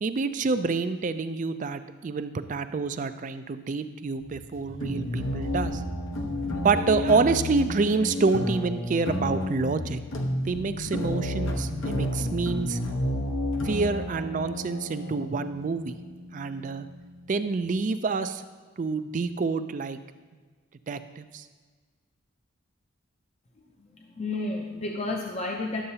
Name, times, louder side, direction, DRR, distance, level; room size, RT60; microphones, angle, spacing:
voice 1, 0.0-5.8 6.6-10.0 10.4-12.8 13.6-16.0 16.3-16.9 17.3-18.4 18.8-20.0 20.9-21.5, right 4 dB, 40° right, 11 dB, 0.3 m, -27 dB
sound 1, 4.1-9.9 10.3-10.6 10.9-11.0, equal, 85° right, 1.0 m, -47 dB
sound 2, 4.8-17.6, left 1 dB, 85° left, 1.0 m, -31 dB
voice 2, 23.9-25.8, left 2 dB, 30° left, 0 dB, 0.5 m, -31 dB
11.0 x 7.7 x 2.8 m, 1.5 s
head